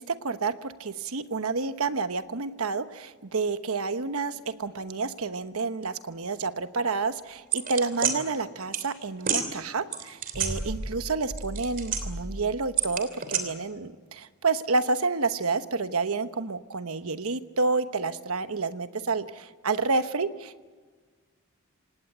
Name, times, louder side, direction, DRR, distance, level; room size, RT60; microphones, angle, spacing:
voice 1, 0.0-20.7, right 4 dB, 75° right, 11 dB, 1.1 m, -29 dB
sound 1, 7.5-8.1 8.7-8.9 9.2-9.5 9.9-11.0 11.3-12.3 12.8-13.4, right 6 dB, 40° right, 3.1 m, -29 dB
27.0 x 18.0 x 8.0 m, 1.4 s
head